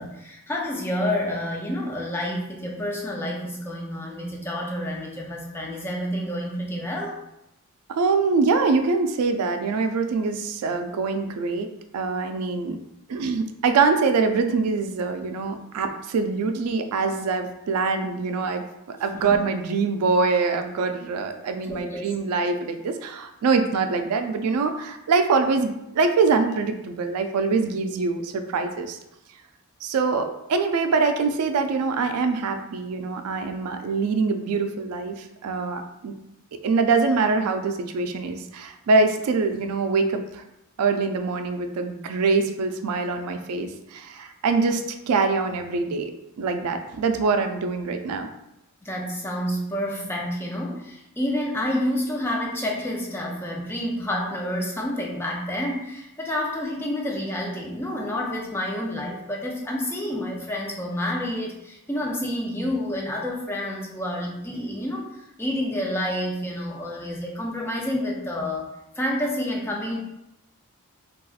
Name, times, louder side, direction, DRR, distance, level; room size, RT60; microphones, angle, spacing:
voice 1, 0.0-7.2 19.1-19.5 21.7-22.0 48.8-70.0, left 1 dB, 10° left, -2 dB, 0.4 m, -29 dB
voice 2, 7.9-11.7 11.9-12.8 13.1-29.0 29.8-36.1 36.5-40.4 40.8-46.1 46.4-48.3, right 4 dB, 85° right, 6 dB, 0.4 m, -24 dB
4.0 x 2.3 x 2.4 m, 0.87 s
head